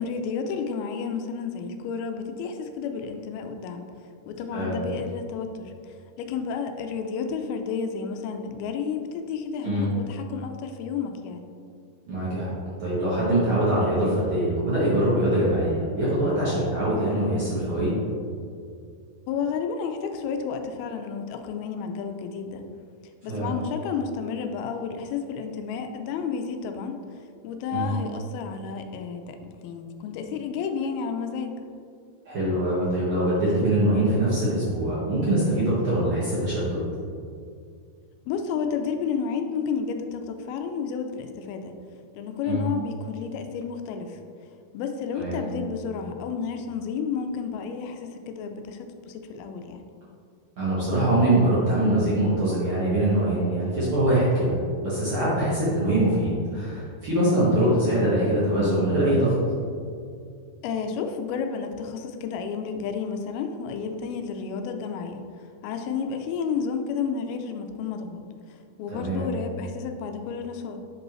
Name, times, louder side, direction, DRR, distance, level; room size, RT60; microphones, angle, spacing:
voice 1, 0.0-3.8 4.3-11.5 19.3-22.6 23.2-27.0 27.4-29.4 29.6-31.5 38.3-41.7 42.2-44.2 44.7-49.8 60.6-65.2 65.6-68.2 68.8-70.8, left 6 dB, 90° left, 6 dB, 2.5 m, -31 dB
voice 2, 12.1-12.5 12.8-18.0 23.3-23.5 27.7-27.9 32.2-36.8 42.4-42.6 45.2-45.4 50.6-59.3 68.9-69.2, right 1 dB, 50° right, -9 dB, 1.6 m, -23 dB
7.5 x 5.3 x 3.1 m, 2.3 s
omnidirectional pair, 4.3 m